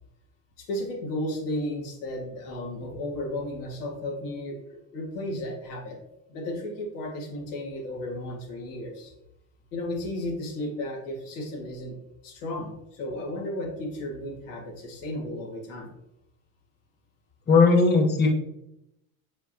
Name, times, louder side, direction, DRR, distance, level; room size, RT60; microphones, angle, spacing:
voice 1, 0.6-6.0 6.3-9.1 9.7-11.9 12.2-15.9, left 1 dB, 80° left, -1 dB, 2.3 m, -34 dB
voice 2, 17.5-18.3, left 4 dB, 20° left, 2 dB, 1.2 m, -18 dB
6.2 x 5.9 x 2.9 m, 0.85 s
supercardioid pair, 90°, 45 cm